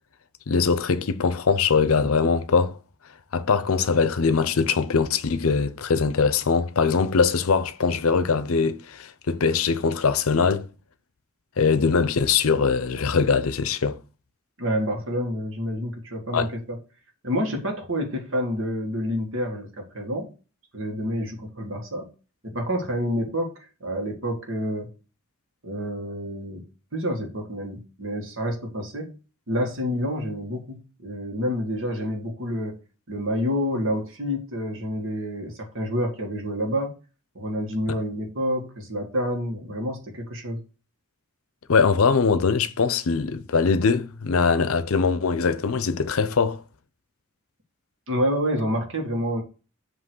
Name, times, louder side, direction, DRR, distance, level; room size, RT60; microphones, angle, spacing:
voice 1, 0.5-2.8 3.3-10.7 11.6-14.0 16.3-16.5 41.7-46.6, left 5 dB, 80° left, 0.6 m, -22 dB
voice 2, 14.6-16.8 17.2-20.3 20.7-22.1 22.4-23.5 23.8-24.9 25.6-26.6 26.9-29.1 29.5-32.8 33.1-36.9 37.4-40.6 48.1-49.4, equal, 65° right, 1.8 m, -28 dB
7.6 x 3.1 x 6.1 m
head